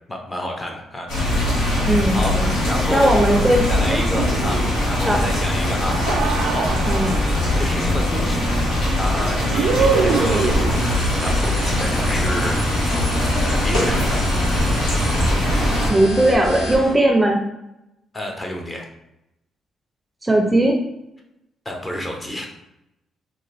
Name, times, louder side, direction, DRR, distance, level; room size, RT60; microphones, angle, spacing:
voice 1, 0.1-1.7 2.1-3.2 3.7-6.0 6.5-6.7 7.6-8.4 9.0-14.3 18.1-18.9 21.6-22.5, left 1 dB, 20° left, 2 dB, 0.7 m, -29 dB
sound 1, 1.1-15.9, left 1 dB, 90° left, 1.4 m, -21 dB
voice 2, 1.9-2.5 2.9-4.0 5.0-5.3 6.9-7.2 15.9-17.4 20.2-20.7, right 1 dB, 15° right, 1 dB, 0.5 m, -18 dB
sound 2, 4.2-5.0 5.7-7.5 9.5-11.0, right 6 dB, 85° right, 0.3 m, -24 dB
sound 3, 9.8-16.9, equal, 55° left, 1.4 m, -29 dB
3.7 x 2.5 x 3.3 m, 0.87 s
cardioid pair, 90°, 0 cm